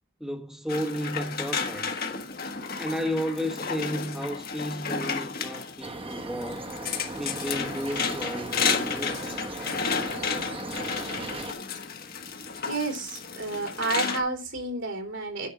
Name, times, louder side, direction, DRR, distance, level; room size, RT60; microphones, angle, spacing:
voice 1, 0.2-1.9 2.8-6.7 7.2-9.4, equal, 5° right, 1.1 m, -33 dB
sound 1, 0.7-14.2, left 5 dB, 50° left, 1.5 m, -32 dB
sound 2, 5.8-11.5, right 2 dB, 30° right, 1.3 m, -37 dB
voice 2, 12.7-15.5, right 3 dB, 70° right, 3.5 m, -30 dB
9.9 x 5.3 x 5.8 m
head